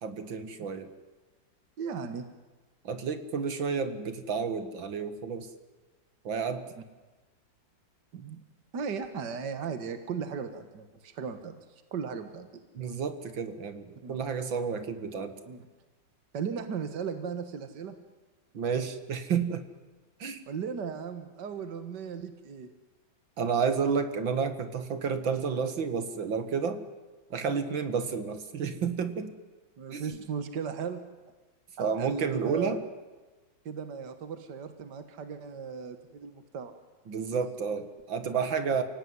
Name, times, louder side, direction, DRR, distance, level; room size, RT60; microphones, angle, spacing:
voice 1, 0.0-0.9 2.8-5.5 6.2-6.7 12.7-15.4 18.5-19.7 20.2-20.4 23.4-26.8 27.3-29.3 29.9-30.2 31.8-32.8 37.1-38.8, right 6 dB, 80° right, 9 dB, 2.6 m, -31 dB
voice 2, 1.8-2.3 8.1-8.4 8.7-11.6 11.9-12.6 14.0-14.2 15.5-15.7 16.3-18.0 20.5-22.7 29.8-31.0 31.8-32.8 33.7-36.7 38.7-38.8, right 6 dB, 65° right, 9 dB, 2.1 m, -36 dB
29.5 x 18.0 x 9.7 m, 1.2 s
omnidirectional pair, 2.1 m